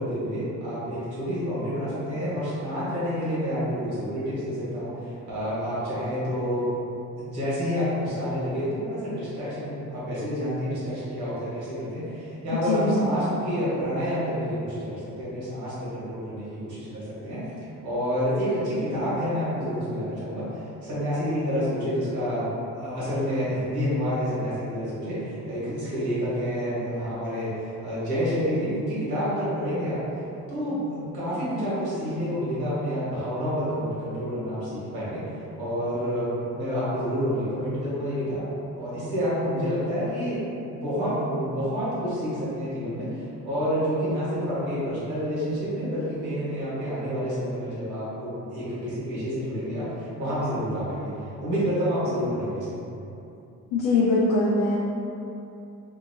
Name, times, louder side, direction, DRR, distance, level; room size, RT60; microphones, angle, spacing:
voice 1, 0.0-6.7 7.2-17.4 17.8-30.0 30.5-35.3 35.6-38.4 38.7-52.7, equal, 80° right, -10 dB, 1.5 m, -28 dB
voice 2, 12.5-13.0 53.7-54.8, left 2 dB, 90° left, -6 dB, 0.5 m, -22 dB
2.7 x 2.6 x 2.7 m, 2.8 s
cardioid pair, 90°, 30 cm